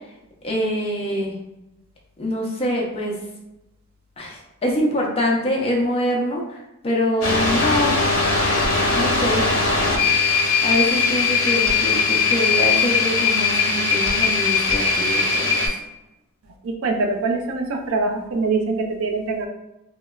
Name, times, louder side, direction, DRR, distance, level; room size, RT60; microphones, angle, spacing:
voice 1, 0.4-1.4 2.2-3.2 4.2-8.0 8.8-9.5 9.9-15.7, equal, 25° left, -2 dB, 0.4 m, -25 dB
sound 1, 7.2-15.7, left 4 dB, 70° left, 0.8 m, -20 dB
voice 2, 16.6-19.5, right 3 dB, 65° right, 3 dB, 0.4 m, -23 dB
2.8 x 2.1 x 2.2 m, 0.94 s
head